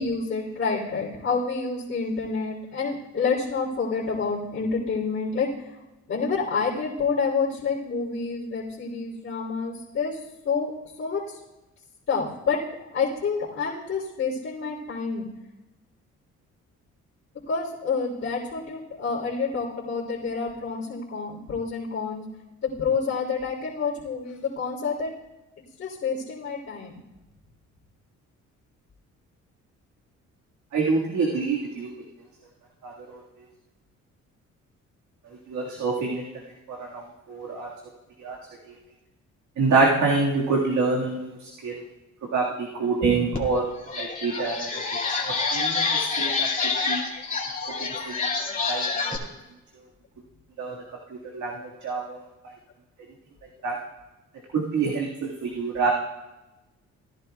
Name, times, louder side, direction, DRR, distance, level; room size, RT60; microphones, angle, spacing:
voice 1, 0.0-5.7 6.1-10.7 11.0-11.4 12.1-12.6 12.9-15.3 17.5-22.3 22.6-25.1 25.8-26.9, left 5 dB, 50° left, -10 dB, 3.3 m, -28 dB
voice 2, 30.7-31.9 32.8-33.2 35.5-36.3 36.7-37.7 38.2-38.4 39.6-41.7 42.3-43.6 44.0-44.7 45.2-46.5 46.9-47.0 48.1-48.2 48.7-49.2 50.6-50.8 51.3-51.5 51.8-52.2 53.6-53.7 54.5-55.9, right 4 dB, 70° right, -2 dB, 1.9 m, -26 dB
sound 1, 43.3-43.4 43.8-49.2, left 4 dB, 25° left, 2.4 m, -27 dB
18.0 x 11.0 x 2.3 m, 1.0 s
cardioid pair, 90°, 30 cm